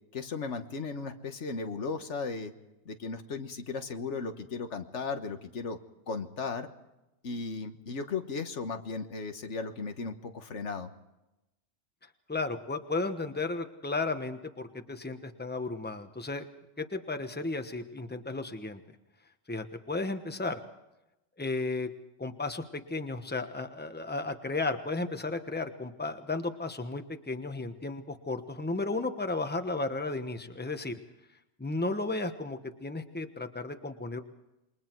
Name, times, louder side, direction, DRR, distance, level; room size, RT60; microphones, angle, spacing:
voice 1, 0.1-2.5 2.8-5.8 6.1-6.7 7.2-10.9, left 4 dB, 90° left, 7 dB, 1.7 m, -36 dB
voice 2, 12.3-16.5 16.8-18.8 19.5-20.6 21.4-21.9 22.2-31.0 31.6-34.2, left 3 dB, 10° left, 7 dB, 1.1 m, -34 dB
28.0 x 22.5 x 4.6 m, 0.94 s
omnidirectional pair, 1.2 m